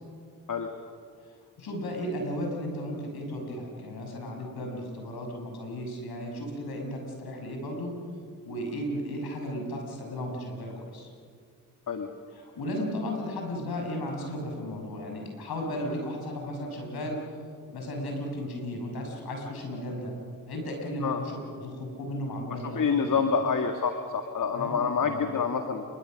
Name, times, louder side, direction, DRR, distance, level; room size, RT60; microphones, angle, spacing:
voice 1, 1.6-7.9 8.4-11.1 12.3-17.3 17.7-20.1 20.5-23.2 24.5-25.2, equal, 70° left, 1 dB, 6.2 m, -35 dB
voice 2, 22.5-25.8, left 6 dB, 50° left, 5 dB, 1.9 m, -27 dB
28.0 x 23.0 x 6.4 m, 2.2 s
hypercardioid pair, 40°, 39 cm